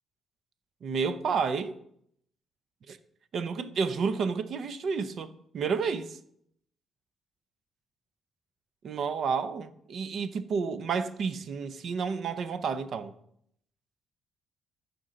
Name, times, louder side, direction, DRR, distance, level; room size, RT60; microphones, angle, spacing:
voice 1, 0.8-1.7 2.9-3.0 3.3-6.2 8.8-13.1, right 5 dB, 60° right, 0.6 m, -30 dB
14.0 x 5.3 x 3.8 m
cardioid pair, 90°, 0 cm